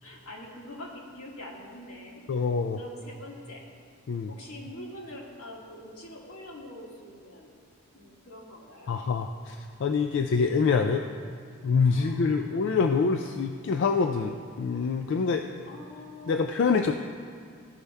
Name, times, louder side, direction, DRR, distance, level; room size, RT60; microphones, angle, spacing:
voice 1, 0.0-2.2 2.8-3.6 4.3-7.6 7.9-9.0 11.9-12.4 15.6-16.5, left 1 dB, 80° left, -2 dB, 1.6 m, -44 dB
voice 2, 2.3-2.8 4.1-4.3 8.9-11.0 11.6-15.5 16.3-16.9, left 5 dB, 55° left, 5 dB, 0.3 m, -25 dB
14.0 x 5.4 x 3.4 m, 2.2 s
head